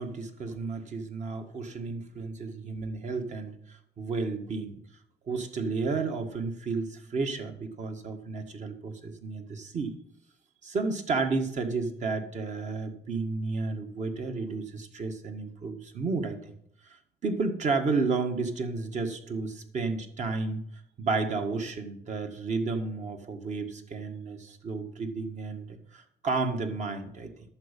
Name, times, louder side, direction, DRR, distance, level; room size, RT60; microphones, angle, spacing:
voice 1, 0.0-4.8 5.3-9.9 10.6-16.5 16.8-17.0 17.2-20.6 21.0-27.3, right 4 dB, 45° right, 5 dB, 1.8 m, -32 dB
11.0 x 7.3 x 5.4 m, 0.71 s
cardioid pair, 110°, 17 cm